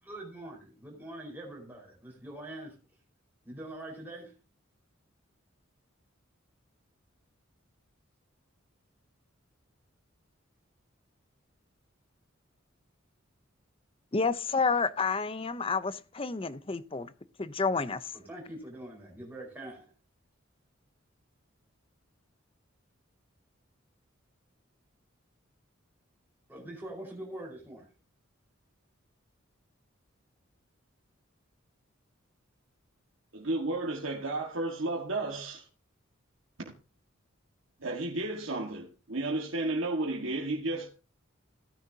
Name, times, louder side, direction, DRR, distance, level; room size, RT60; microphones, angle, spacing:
voice 1, 0.0-2.8 3.4-4.3 18.1-19.9 26.5-27.9, right 1 dB, 10° right, 4.8 m, -44 dB
voice 2, 14.1-17.1 17.4-18.1, left 4 dB, 25° left, 0.6 m, -30 dB
voice 3, 33.3-35.7 36.6-36.7 37.8-40.9, right 2 dB, 75° right, 1.7 m, -32 dB
16.5 x 9.9 x 2.8 m
head